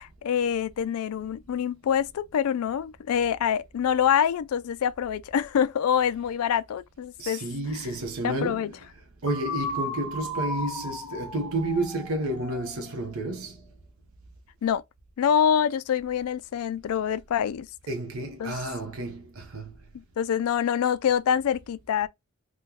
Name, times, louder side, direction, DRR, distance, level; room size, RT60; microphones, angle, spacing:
voice 1, 0.0-7.4 8.2-8.7 14.6-14.8 15.2-17.7 18.4-18.6 19.9-22.1, left 8 dB, 75° left, 0.3 m, -25 dB
voice 2, 7.2-8.7 9.2-13.6 17.9-19.8, right 2 dB, 70° right, 0.7 m, -31 dB
sound 1, 9.3-13.1, left 1 dB, ahead, 0.7 m, -35 dB
3.6 x 2.1 x 2.8 m
head